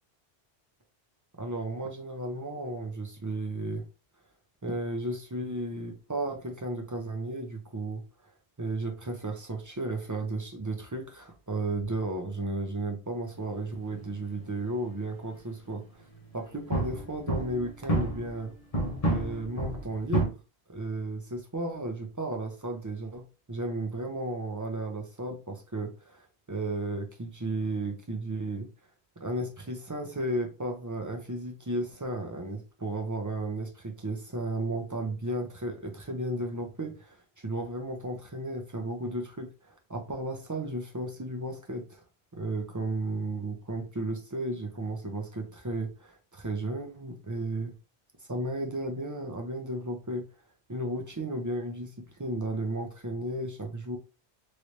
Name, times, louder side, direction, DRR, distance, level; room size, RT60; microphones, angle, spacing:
voice 1, 1.3-3.8 4.6-8.0 8.6-16.0 16.3-18.5 19.0-20.4 20.7-28.7 29.2-37.2 37.4-42.0 42.3-47.7 48.3-50.2 50.7-54.0, right 2 dB, 25° right, 0.5 m, -34 dB
sound 1, 16.0-16.2 16.7-18.4 18.7-20.3, right 1 dB, 35° left, 0.9 m, -29 dB
3.2 x 3.1 x 2.6 m
omnidirectional pair, 1.1 m